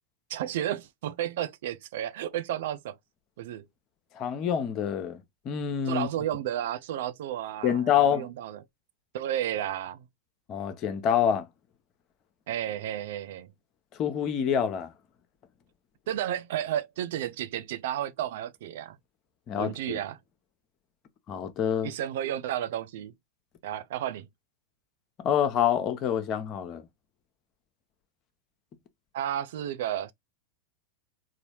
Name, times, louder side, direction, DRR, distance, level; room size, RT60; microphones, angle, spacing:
voice 1, 0.3-3.0 3.4-3.7 5.9-8.6 9.1-10.0 12.5-13.5 16.1-19.0 19.6-20.2 21.8-23.1 23.6-24.3 29.1-30.1, right 11 dB, 55° right, 0.4 m, -32 dB
voice 2, 4.2-6.1 7.6-8.3 10.5-11.5 14.0-14.9 19.5-20.0 21.3-21.9 25.2-26.8, left 9 dB, 35° left, 0.8 m, -26 dB
4.0 x 2.6 x 3.0 m
figure-of-eight pair, 90°, 0 cm